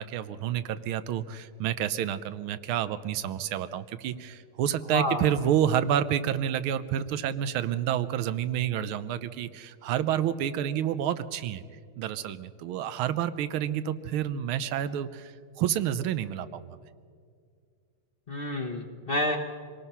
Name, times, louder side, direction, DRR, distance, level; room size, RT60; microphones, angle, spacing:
voice 1, 0.0-11.6 12.0-16.8, right 10 dB, 90° right, 13 dB, 1.6 m, -29 dB
voice 2, 4.9-5.3 18.3-19.4, left 1 dB, 35° left, 4 dB, 1.0 m, -29 dB
25.5 x 18.0 x 5.6 m, 2.2 s
omnidirectional pair, 2.2 m